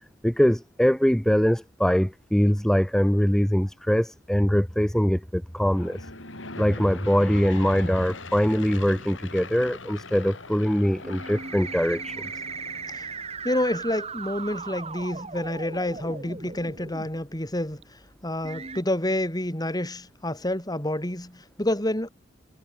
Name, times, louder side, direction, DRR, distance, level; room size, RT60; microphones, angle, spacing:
voice 1, 0.2-6.1 6.6-12.2, equal, 5° left, 0.4 m, -22 dB
Aircraft / Engine, 5.6-13.6, left 3 dB, 80° left, 7.6 m, -41 dB
sound 1, 11.0-17.1 17.8-17.9 18.4-18.8, right 5 dB, 35° right, 3.8 m, -37 dB
voice 2, 13.4-17.8 18.2-22.1, left 1 dB, 20° left, 4.6 m, -28 dB
head